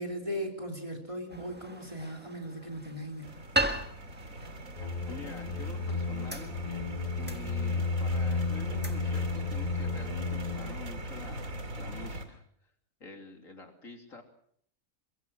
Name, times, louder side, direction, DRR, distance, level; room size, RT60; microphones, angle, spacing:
voice 1, 0.0-3.5, equal, 25° right, 2 dB, 3.5 m, -38 dB
sound 1, 1.3-11.4, right 1 dB, 10° right, 1.5 m, -39 dB
sound 2, 3.2-12.2, right 1 dB, 85° right, 3.0 m, -41 dB
voice 2, 4.7-6.5 7.2-12.4 13.0-14.2, left 3 dB, 75° left, 4 dB, 3.5 m, -47 dB
sound 3, 4.8-10.7, left 4 dB, 35° left, 1.7 m, -33 dB
22.5 x 22.5 x 6.3 m, 0.66 s
omnidirectional pair, 1.4 m